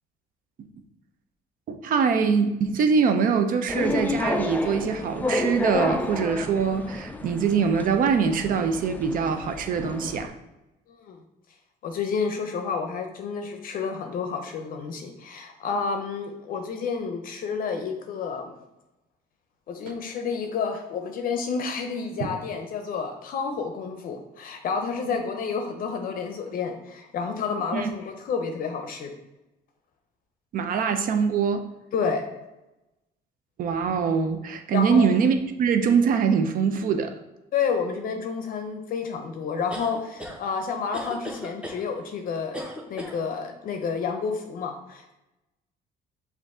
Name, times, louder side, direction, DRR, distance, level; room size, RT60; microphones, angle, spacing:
voice 1, 1.7-10.3 27.7-27.9 30.5-31.7 33.6-37.1, right 6 dB, 55° right, 7 dB, 0.5 m, -23 dB
sound 1, 3.7-10.3, left 2 dB, 10° left, 0.3 m, -30 dB
voice 2, 10.9-11.2 11.8-18.6 19.7-29.1 31.9-32.3 34.7-35.1 37.5-42.6 42.9-45.1, left 5 dB, 55° left, 5 dB, 0.5 m, -30 dB
sound 2, 39.7-40.4 40.9-41.8 42.5-43.2, equal, 5° right, 0.7 m, -36 dB
5.1 x 2.5 x 3.6 m, 0.98 s
cardioid pair, 110°, 17 cm